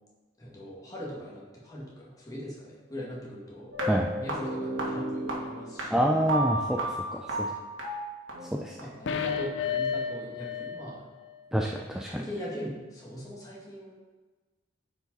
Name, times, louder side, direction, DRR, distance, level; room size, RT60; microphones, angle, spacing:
voice 1, 0.4-6.3 8.8-11.0 11.5-11.6 11.9-13.9, equal, 20° left, -5 dB, 1.8 m, -40 dB
sound 1, 3.7-8.8, right 1 dB, 90° right, 1.7 m, -33 dB
voice 2, 5.9-6.8 7.1-7.5 8.6-8.8 11.5-12.2, equal, 5° right, 0 dB, 0.4 m, -27 dB
sound 2, 9.1-10.9 11.2-11.3, left 7 dB, 65° left, 0.5 m, -31 dB
9.2 x 4.9 x 4.0 m, 1.3 s
head